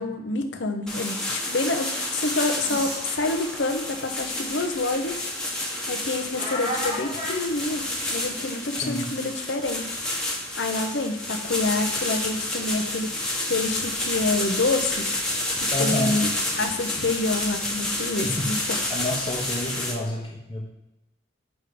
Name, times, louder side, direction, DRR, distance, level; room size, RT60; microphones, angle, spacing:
voice 1, 0.0-5.2 5.9-10.0 10.5-13.1 13.5-15.1 15.8-16.3 16.5-18.8, left 2 dB, 70° left, 6 dB, 0.8 m, -27 dB
sound 1, 0.9-19.9, left 1 dB, 5° left, 1.2 m, -30 dB
sound 2, 2.7-3.0 4.2-4.3 4.8-4.9 6.3-7.4, equal, 40° right, 2.8 m, -31 dB
voice 2, 8.8-9.1 15.7-16.3 18.2-20.7, left 1 dB, 25° left, -4 dB, 0.9 m, -29 dB
8.0 x 3.6 x 5.1 m, 0.94 s
head